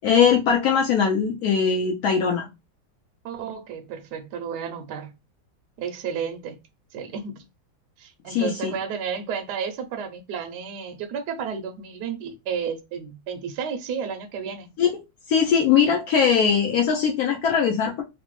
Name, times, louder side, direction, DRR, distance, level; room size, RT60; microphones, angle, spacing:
voice 1, 0.0-2.5 8.3-8.7 14.8-14.9 15.3-18.0, left 7 dB, 90° left, 0.8 m, -20 dB
voice 2, 3.2-5.1 5.8-6.6 6.9-7.4 8.0-14.7, right 6 dB, 75° right, 1.0 m, -32 dB
3.3 x 2.0 x 3.0 m
omnidirectional pair, 2.2 m